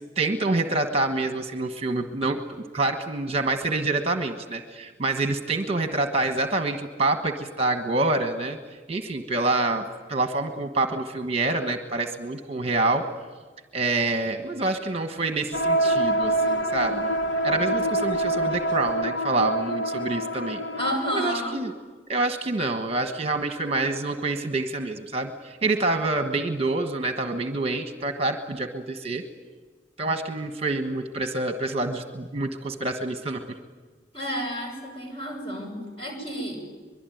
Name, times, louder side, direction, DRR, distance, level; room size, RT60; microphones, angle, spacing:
voice 1, 0.2-2.4 2.7-13.1 13.7-17.1 17.4-20.6 21.1-21.7 22.1-29.3 30.0-33.6 34.2-34.3, right 2 dB, 30° right, 6 dB, 1.3 m, -27 dB
sound 1, 15.5-21.4, right 1 dB, 70° left, 1.0 m, -26 dB
voice 2, 20.8-21.6 34.1-36.6, equal, 30° left, 2 dB, 7.4 m, -30 dB
24.5 x 22.5 x 9.3 m, 1.4 s
head